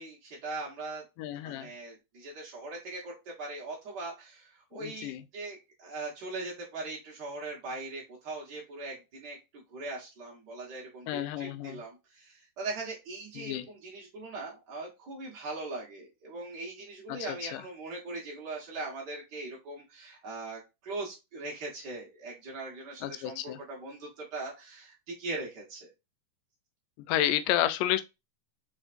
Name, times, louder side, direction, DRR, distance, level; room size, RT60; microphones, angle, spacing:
voice 1, 0.0-1.0 1.4-25.9, right 2 dB, 55° right, 1.2 m, -40 dB
voice 2, 1.2-1.7 4.7-5.2 11.1-11.8 13.4-13.7 17.1-17.6 23.0-23.6 27.1-28.0, left 12 dB, 85° left, 2.2 m, -31 dB
4.5 x 4.3 x 2.5 m
omnidirectional pair, 3.9 m